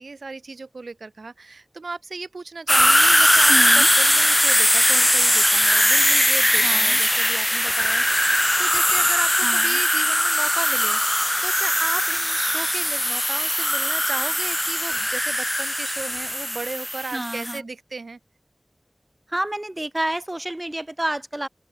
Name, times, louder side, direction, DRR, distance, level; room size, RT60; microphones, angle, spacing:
voice 1, 0.0-18.2, right 3 dB, 85° right, 6.2 m, -35 dB
sound 1, 2.7-17.6, equal, 10° left, 0.9 m, -20 dB
voice 2, 3.5-3.9 6.6-7.0 9.4-9.8 17.1-17.7 19.3-21.5, right 1 dB, 25° right, 2.3 m, -29 dB
open air
wide cardioid pair, 50°, 0 cm